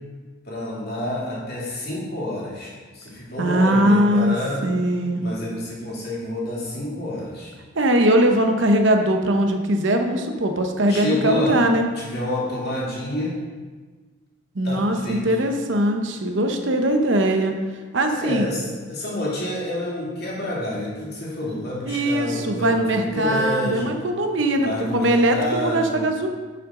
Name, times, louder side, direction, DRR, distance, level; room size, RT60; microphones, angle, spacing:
voice 1, 0.4-4.8 5.2-7.5 10.9-11.6 12.0-13.4 14.6-15.4 18.1-23.9 24.5-26.0, left 1 dB, 50° left, -5 dB, 2.4 m, -28 dB
voice 2, 3.4-4.3 4.6-5.2 7.7-11.9 14.5-17.5 17.9-18.5 21.9-26.3, right 1 dB, 60° right, 4 dB, 0.8 m, -20 dB
10.5 x 5.9 x 3.8 m, 1.4 s
head